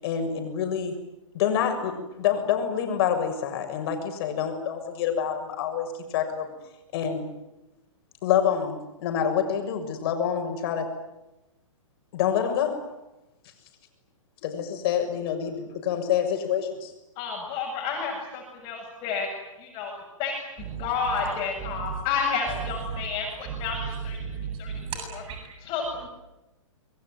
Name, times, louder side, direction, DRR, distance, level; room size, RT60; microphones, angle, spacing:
voice 1, 0.0-1.0 1.3-6.5 6.9-7.3 8.2-10.9 12.1-13.0 14.4-16.9, left 8 dB, 45° left, 6 dB, 6.9 m, -27 dB
voice 2, 17.2-19.3 19.6-24.2 24.6-24.7 25.6-26.1, left 5 dB, 30° left, 0 dB, 8.0 m, -30 dB
voice 3, 20.6-20.9 21.6-22.0 22.9-23.0 23.5-25.5, right 6 dB, 30° right, 3 dB, 7.9 m, -35 dB
25.5 x 23.0 x 9.6 m, 0.95 s
hypercardioid pair, 135°, 17 cm